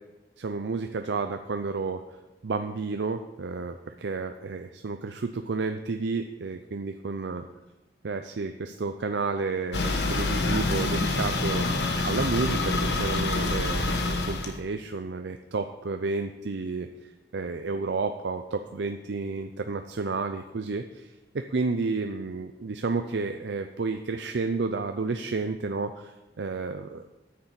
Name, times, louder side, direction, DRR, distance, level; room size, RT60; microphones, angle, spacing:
voice 1, 0.4-2.0 2.4-7.4 8.0-27.0, right 4 dB, 80° right, 7 dB, 0.5 m, -31 dB
sound 1, 9.7-14.6, left 2 dB, 70° left, 1.3 m, -26 dB
9.7 x 6.6 x 7.0 m, 1.1 s
head